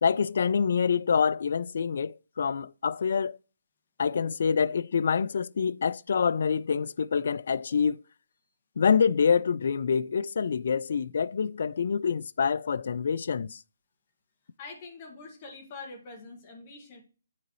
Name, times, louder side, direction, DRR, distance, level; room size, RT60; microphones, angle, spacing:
voice 1, 0.0-3.4 4.0-8.0 8.8-13.6, left 6 dB, 55° left, 0.3 m, -26 dB
voice 2, 14.6-17.0, left 3 dB, 35° left, 2.2 m, -44 dB
9.6 x 3.9 x 3.1 m
figure-of-eight pair, 140°, 0 cm